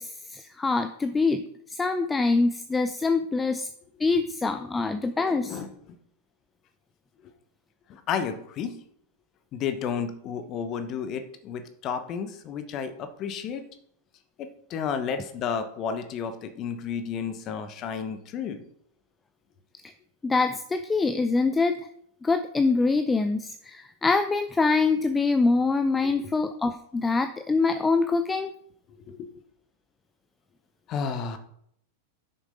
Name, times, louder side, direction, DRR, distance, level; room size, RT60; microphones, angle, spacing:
voice 1, 0.0-1.4 1.7-3.7 4.0-5.6 20.2-21.9 22.2-28.5, left 3 dB, 15° left, 9 dB, 0.6 m, -24 dB
voice 2, 5.2-5.7 7.9-8.8 9.5-13.6 14.4-18.6 26.0-26.3 29.1-29.3 30.9-31.4, left 7 dB, 40° left, 9 dB, 1.0 m, -32 dB
6.8 x 6.4 x 5.2 m, 0.70 s
figure-of-eight pair, 95°, 0 cm